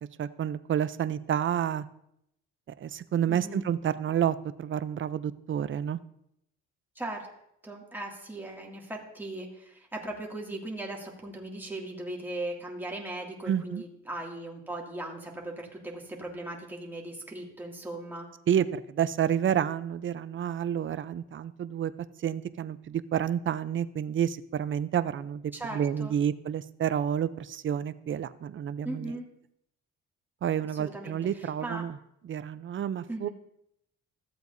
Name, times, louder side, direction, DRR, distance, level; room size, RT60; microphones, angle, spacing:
voice 1, 0.2-1.9 2.8-6.0 13.5-13.8 18.5-21.9 22.2-29.1 30.4-32.0 32.2-33.3, right 9 dB, 40° right, 14 dB, 0.5 m, -29 dB
voice 2, 3.3-3.6 7.0-7.3 7.6-18.3 25.5-26.1 28.8-29.3 30.8-31.8 33.1-33.3, right 1 dB, 5° right, -2 dB, 2.2 m, -38 dB
14.5 x 7.9 x 2.6 m, 0.76 s
cardioid pair, 90°, 30 cm